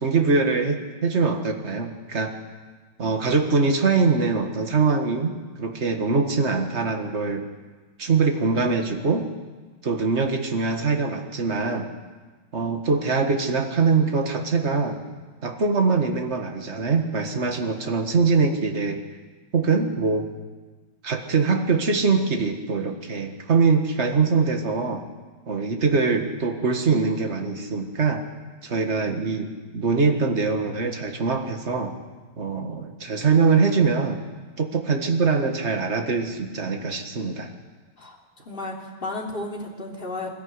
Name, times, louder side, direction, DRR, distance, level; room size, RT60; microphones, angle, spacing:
voice 1, 0.0-2.3 3.0-7.5 8.0-9.3 9.8-11.9 12.5-15.0 15.4-19.0 19.5-20.3 21.0-25.1 25.5-28.2 28.6-31.9 32.4-34.2 34.6-37.5, right 4 dB, 35° right, 4 dB, 1.8 m, -23 dB
voice 2, 38.0-40.3, left 2 dB, 25° left, -1 dB, 3.2 m, -33 dB
21.5 x 14.0 x 9.6 m, 1.3 s
omnidirectional pair, 2.3 m